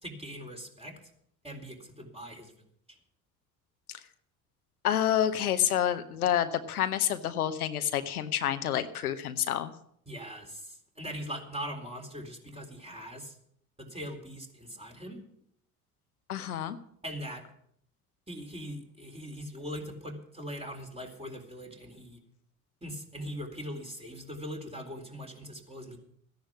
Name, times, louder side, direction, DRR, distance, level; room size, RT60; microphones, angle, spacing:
voice 1, 0.0-0.9 1.4-2.5 10.1-13.4 13.8-15.2 17.0-17.4 18.3-22.2 22.8-26.0, equal, 15° right, 2 dB, 4.0 m, -41 dB
voice 2, 4.8-9.7 16.3-16.8, left 10 dB, 90° left, 10 dB, 0.8 m, -28 dB
14.5 x 10.5 x 6.1 m, 0.67 s
hypercardioid pair, 55°, 43 cm